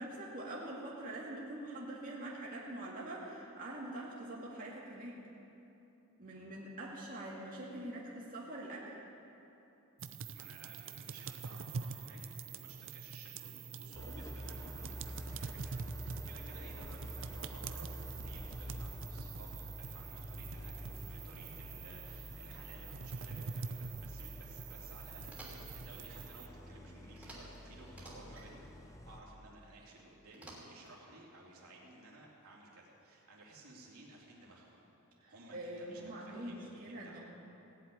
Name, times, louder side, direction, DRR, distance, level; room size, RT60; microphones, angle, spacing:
voice 1, 0.0-5.2 6.2-8.9 35.2-37.2, right 1 dB, 40° right, -5 dB, 2.3 m, -44 dB
voice 2, 6.3-6.6 10.2-34.8 35.3-37.2, right 2 dB, 80° right, -4 dB, 3.0 m, -56 dB
sound 1, 10.0-26.5, right 5 dB, 60° right, 0.6 m, -45 dB
Idling, 13.9-29.2, equal, 15° left, 0.6 m, -48 dB
sound 2, 25.2-25.8 27.2-27.6 27.9-28.5 30.3-31.0, right 1 dB, 5° right, 3.1 m, -52 dB
17.5 x 7.9 x 9.4 m, 2.9 s
head